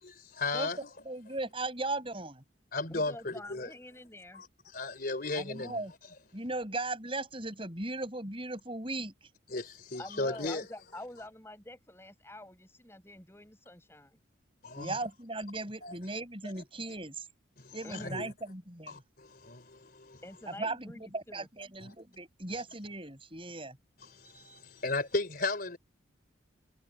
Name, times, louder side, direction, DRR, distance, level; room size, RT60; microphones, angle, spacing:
voice 1, 0.0-0.8 2.7-3.7 4.7-5.8 9.5-10.6 14.6-15.0 15.8-15.9 17.6-17.7 18.0-18.3 18.9-20.2 21.8-21.9 24.0-25.8, left 3 dB, 45° left, 3.8 m, -35 dB
voice 2, 1.1-2.4 5.4-5.9 6.3-9.3 14.8-17.3 17.7-19.0 20.5-23.8, right 2 dB, 25° right, 7.2 m, -37 dB
voice 3, 2.9-4.4 10.0-14.2 17.8-18.2 20.2-21.5, left 1 dB, 10° left, 7.8 m, -47 dB
head